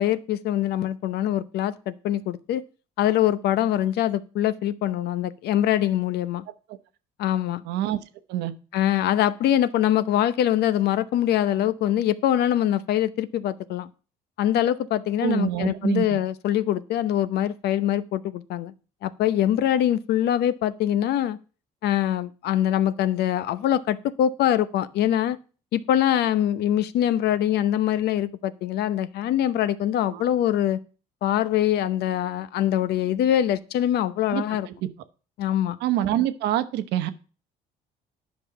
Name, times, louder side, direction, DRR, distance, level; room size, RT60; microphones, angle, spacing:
voice 1, 0.0-2.6 3.0-6.4 7.2-7.6 8.7-13.9 14.4-18.7 19.0-21.4 21.8-25.4 25.7-30.8 31.2-34.7 35.4-35.8, left 11 dB, 75° left, 15 dB, 0.8 m, -23 dB
voice 2, 7.6-8.0 8.3-8.5 15.2-16.2 30.0-30.2 34.3-34.4 34.8-34.9 35.8-37.1, right 12 dB, 85° right, 10 dB, 1.1 m, -25 dB
10.5 x 5.6 x 5.8 m, 0.36 s
cardioid pair, 110°, 17 cm